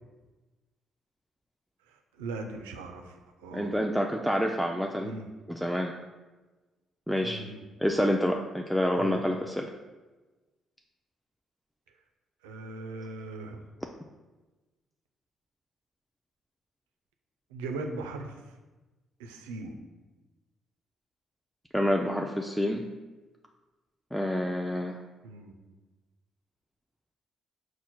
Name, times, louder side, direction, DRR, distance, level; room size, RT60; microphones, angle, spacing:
voice 1, 1.9-3.7 5.0-5.3 7.2-8.0 9.0-9.2 12.4-13.6 17.5-18.5 19.2-19.8 25.2-25.5, right 3 dB, 90° right, 4 dB, 0.3 m, -39 dB
voice 2, 3.5-5.2 5.5-5.9 7.1-7.4 7.8-9.7 21.7-22.8 24.1-25.0, equal, ahead, 1 dB, 0.3 m, -28 dB
4.4 x 2.1 x 4.2 m, 1.2 s
hypercardioid pair, 50°, 0 cm